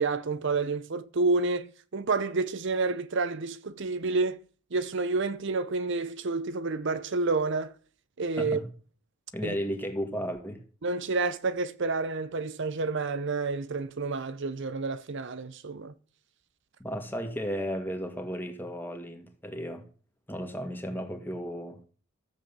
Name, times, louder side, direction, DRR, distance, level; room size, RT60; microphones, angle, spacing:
voice 1, 0.0-4.4 4.7-7.7 8.2-8.6 9.4-9.6 10.8-15.9, right 3 dB, 55° right, 0.7 m, -29 dB
voice 2, 9.3-10.6 16.8-19.8 20.3-21.8, equal, 10° left, 2.0 m, -34 dB
14.0 x 7.6 x 7.2 m
head